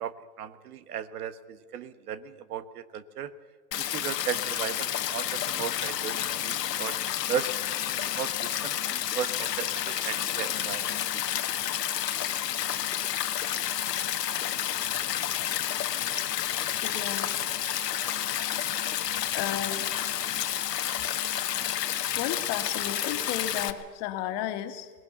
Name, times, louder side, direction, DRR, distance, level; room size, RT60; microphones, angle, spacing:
voice 1, 0.0-3.3 3.9-7.0 7.3-7.5 8.0-11.2, right 8 dB, 65° right, 13 dB, 1.4 m, -36 dB
Stream, 3.7-23.7, left 11 dB, 75° left, 1.5 m, -30 dB
voice 2, 16.8-17.3 19.3-19.8 22.2-24.9, left 11 dB, 40° left, 8 dB, 2.0 m, -33 dB
22.0 x 19.0 x 6.9 m, 1.5 s
hypercardioid pair, 115°, 49 cm